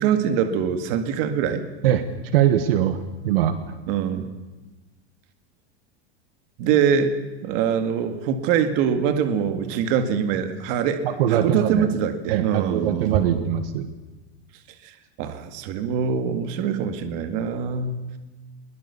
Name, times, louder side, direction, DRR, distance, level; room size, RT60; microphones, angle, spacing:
voice 1, 0.0-1.6 3.9-4.3 6.6-7.1 7.4-11.0 11.3-13.4 14.8-18.1, right 7 dB, 40° right, 9 dB, 2.1 m, -23 dB
voice 2, 2.3-3.6 11.0-11.9 12.3-13.9, right 11 dB, 60° right, 10 dB, 1.7 m, -22 dB
22.0 x 21.0 x 7.1 m, 1.2 s
supercardioid pair, 175°, 33 cm